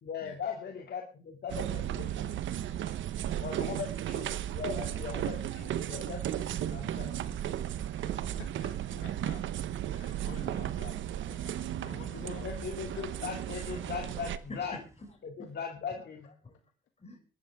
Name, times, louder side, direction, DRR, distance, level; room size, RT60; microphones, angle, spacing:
voice 1, 0.0-2.4 3.4-7.3 12.2-14.7 15.4-16.3, left 6 dB, 55° left, 2.5 m, -39 dB
sound 1, 1.5-14.4, right 11 dB, 75° right, 1.0 m, -35 dB
sound 2, 4.7-15.1, right 1 dB, 15° right, 3.1 m, -55 dB
voice 2, 7.9-9.4 9.9-12.6 12.9-13.0, left 9 dB, 90° left, 2.0 m, -51 dB
voice 3, 14.5-16.7 17.0-17.2, left 2 dB, 30° left, 6.6 m, -48 dB
22.0 x 12.5 x 3.6 m
cardioid pair, 90°, 20 cm